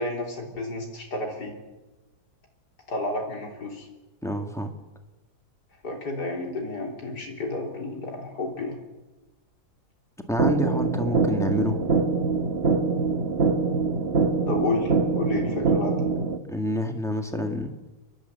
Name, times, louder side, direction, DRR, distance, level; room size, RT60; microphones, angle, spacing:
voice 1, 0.0-1.5 2.9-3.9 5.8-8.8 14.5-16.0, left 2 dB, 80° left, 1 dB, 4.0 m, -31 dB
voice 2, 4.2-4.7 10.3-11.8 16.5-17.7, equal, ahead, 5 dB, 1.7 m, -28 dB
sound 1, 10.4-16.4, right 4 dB, 40° right, 1.4 m, -24 dB
29.5 x 11.5 x 8.2 m, 1.1 s
omnidirectional pair, 1.7 m